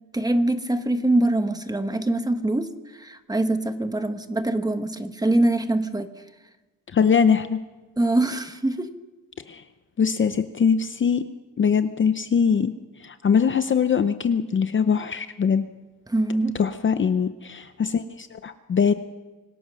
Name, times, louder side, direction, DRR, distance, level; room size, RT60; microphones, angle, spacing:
voice 1, 0.1-6.1 8.0-8.9 16.1-16.6, right 1 dB, 10° right, 8 dB, 1.0 m, -24 dB
voice 2, 6.9-7.6 9.5-9.6 10.0-11.2 11.6-12.7 13.0-15.7 16.6-18.9, left 6 dB, 35° left, 10 dB, 0.6 m, -22 dB
25.5 x 17.0 x 6.2 m, 1.2 s
wide cardioid pair, 175°, 35 cm